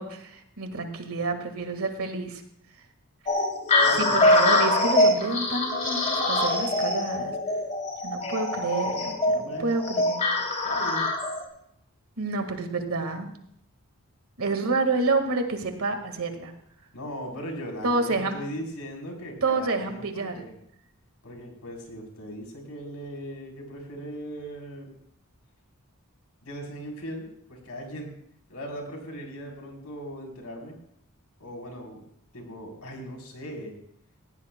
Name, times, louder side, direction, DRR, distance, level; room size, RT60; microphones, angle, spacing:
voice 1, 0.0-2.4 4.0-7.4 8.0-10.2 12.2-13.3 14.4-16.5 17.8-18.4 19.4-20.4, right 3 dB, 70° right, 6 dB, 1.7 m, -28 dB
sound 1, 3.3-11.4, left 2 dB, 35° left, 2.9 m, -24 dB
voice 2, 3.8-4.2 9.4-9.7 10.6-11.1 16.9-20.5 21.2-25.0 26.4-28.1 28.5-30.8 31.4-32.0 32.3-33.7, equal, 90° left, 1 dB, 3.7 m, -38 dB
18.0 x 16.0 x 2.2 m, 0.73 s
head